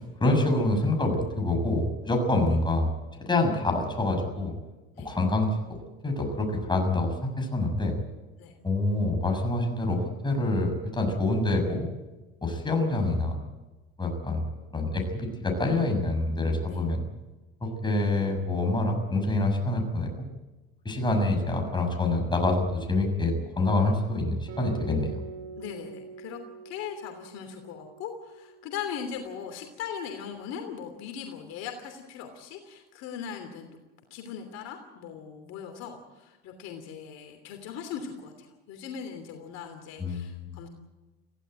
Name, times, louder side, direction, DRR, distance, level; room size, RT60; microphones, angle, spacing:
voice 1, 0.2-2.9 3.2-4.5 5.0-5.8 6.0-7.9 8.6-11.9 12.4-13.4 14.0-14.4 14.7-17.0 17.6-20.3 20.8-25.2 40.0-40.6, left 2 dB, 15° left, 3 dB, 6.6 m, -26 dB
Guitar, 24.5-29.4, right 5 dB, 85° right, 5.8 m, -44 dB
voice 2, 25.6-33.8 34.1-40.7, left 7 dB, 60° left, 4 dB, 3.1 m, -39 dB
22.5 x 16.0 x 9.0 m, 1.2 s
supercardioid pair, 105°, 29 cm